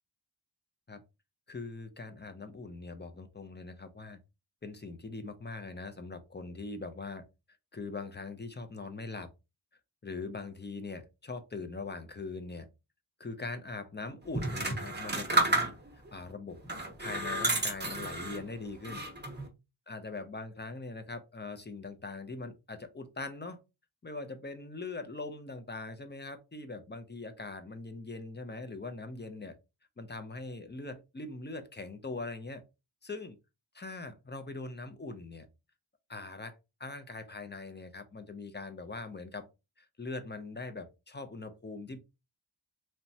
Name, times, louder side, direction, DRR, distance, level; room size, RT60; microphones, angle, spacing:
voice 1, 1.5-4.2 4.6-7.2 7.7-9.3 10.0-12.7 13.2-16.6 17.0-19.0 19.9-23.6 24.0-29.6 30.0-32.6 33.0-33.4 33.7-35.5 36.1-39.5 39.8-42.0, left 3 dB, 25° left, 0.4 m, -42 dB
sound 1, 14.3-16.1 16.6-18.4 18.8-19.5, right 2 dB, 20° right, 0.7 m, -31 dB
3.0 x 2.1 x 2.7 m
wide cardioid pair, 60°, 48 cm